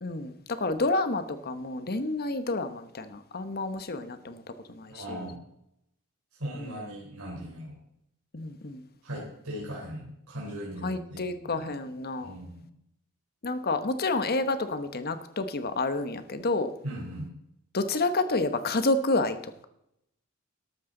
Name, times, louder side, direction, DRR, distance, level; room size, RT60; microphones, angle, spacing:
voice 1, 0.0-4.4 4.7-5.3 6.5-6.8 8.3-8.8 10.8-12.3 13.4-16.7 17.7-19.6, left 2 dB, 45° left, 10 dB, 1.1 m, -29 dB
voice 2, 4.9-5.4 6.4-7.8 9.0-11.7 12.2-12.7 16.8-17.3, equal, 80° right, -4 dB, 3.8 m, -38 dB
13.5 x 12.0 x 3.9 m, 0.79 s
head